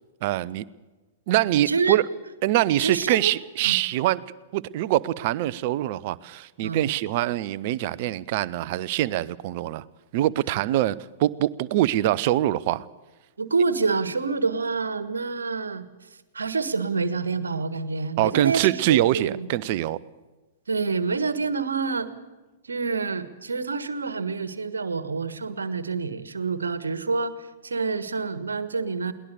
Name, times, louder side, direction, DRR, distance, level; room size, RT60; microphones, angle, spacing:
voice 1, 0.2-0.7 1.3-2.0 2.4-4.2 4.5-9.8 10.1-12.9 18.2-20.0, right 14 dB, 40° right, 0.7 m, -24 dB
voice 2, 1.7-2.0 2.8-3.3 3.6-3.8 6.6-6.9 13.4-15.8 16.3-19.5 20.7-22.1 22.7-29.1, right 4 dB, 70° right, 1.5 m, -27 dB
22.0 x 19.0 x 6.6 m
figure-of-eight pair, 105°, 0 cm